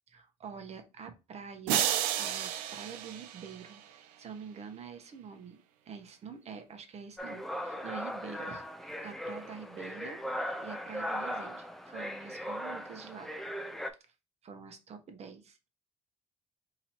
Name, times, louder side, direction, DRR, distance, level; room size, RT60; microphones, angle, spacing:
voice 1, 0.1-1.9 2.1-10.2 10.6-13.3 14.4-15.7, right 6 dB, 50° right, 7 dB, 1.0 m, -46 dB
sound 1, 1.7-4.0, right 11 dB, 90° right, 0.4 m, -32 dB
sound 2, 7.2-13.9, equal, ahead, 0.6 m, -38 dB
3.0 x 2.8 x 4.3 m, 0.28 s
supercardioid pair, 80°, 14 cm